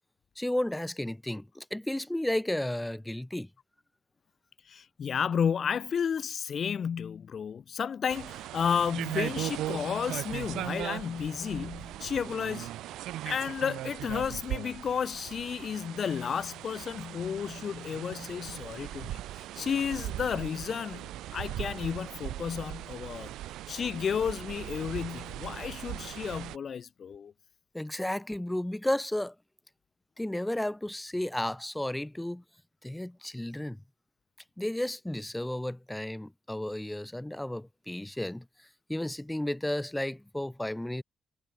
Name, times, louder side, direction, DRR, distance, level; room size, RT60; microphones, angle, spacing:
voice 1, 0.4-3.5 27.7-29.3 30.2-32.4 32.8-33.8 34.6-41.0, left 1 dB, 5° left, 4.8 m, -33 dB
voice 2, 4.7-12.7 13.3-23.3 23.7-27.3, left 7 dB, 50° left, 3.8 m, -32 dB
sound 1, 8.1-26.6, right 14 dB, 85° right, 1.4 m, -39 dB
cardioid pair, 90°, 0 cm